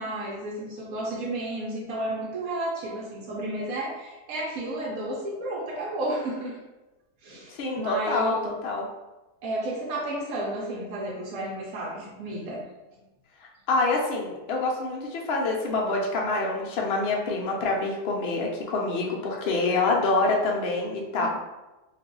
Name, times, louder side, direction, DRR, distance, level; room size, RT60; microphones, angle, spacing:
voice 1, 0.0-6.6 7.2-8.5 9.4-12.6 21.2-21.3, right 1 dB, 65° right, -4 dB, 1.0 m, -32 dB
voice 2, 7.5-8.4 8.6-8.9 13.7-21.3, left 3 dB, 75° left, -1 dB, 0.5 m, -26 dB
2.6 x 2.4 x 3.7 m, 1.1 s
omnidirectional pair, 1.8 m